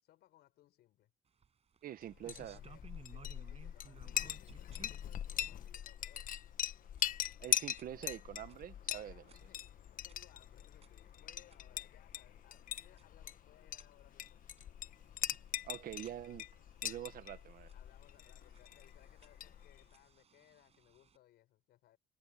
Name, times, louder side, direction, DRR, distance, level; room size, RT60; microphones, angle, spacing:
voice 1, 0.0-1.1 2.2-6.3 8.9-14.5 17.7-22.0, left 14 dB, 75° left, 5.7 m, -66 dB
sound 1, 1.3-21.2, right 6 dB, 35° right, 7.5 m, -63 dB
voice 2, 1.8-2.6 7.4-9.2 15.6-16.4 16.8-17.7, right 11 dB, 60° right, 1.3 m, -45 dB
Chink clink, 2.1-19.9, left 10 dB, 55° left, 1.4 m, -42 dB
cardioid pair, 110°, 17 cm